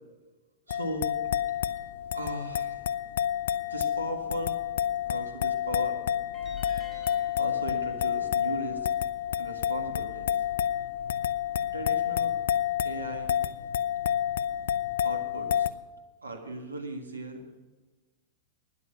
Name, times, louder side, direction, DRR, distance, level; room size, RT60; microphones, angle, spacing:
sound 1, 0.7-15.7, left 10 dB, 65° left, 0.4 m, -29 dB
voice 1, 0.7-1.4 2.1-2.9 3.7-4.6 5.1-6.0 7.3-9.0 9.4-10.4 11.7-12.4 12.8-13.4 15.0-15.7 16.2-17.4, right 1 dB, 85° right, 5 dB, 1.8 m, -37 dB
sound 2, 6.3-9.5, left 1 dB, 5° left, 3.5 m, -53 dB
13.0 x 10.0 x 6.2 m, 1.2 s
figure-of-eight pair, 95°, 0 cm